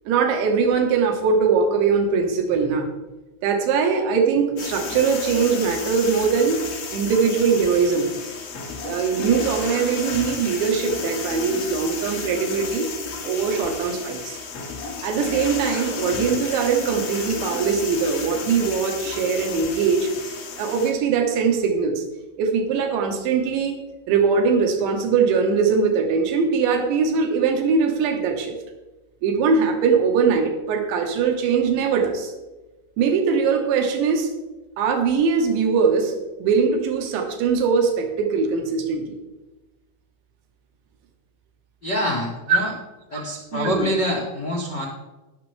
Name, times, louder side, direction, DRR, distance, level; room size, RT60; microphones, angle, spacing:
voice 1, 0.1-2.9 3.4-6.7 6.9-8.1 8.8-12.9 13.2-14.4 15.0-20.1 20.6-22.0 22.4-28.6 29.2-32.3 33.0-34.3 34.8-36.2 36.4-39.2 43.5-43.9, right 5 dB, 75° right, 3 dB, 3.8 m, -21 dB
sound 1, 4.6-20.9, left 5 dB, 90° left, 4.6 m, -32 dB
voice 2, 41.8-42.7 43.1-44.8, equal, 70° left, -2 dB, 1.0 m, -25 dB
20.0 x 6.8 x 3.5 m, 1.1 s
omnidirectional pair, 5.2 m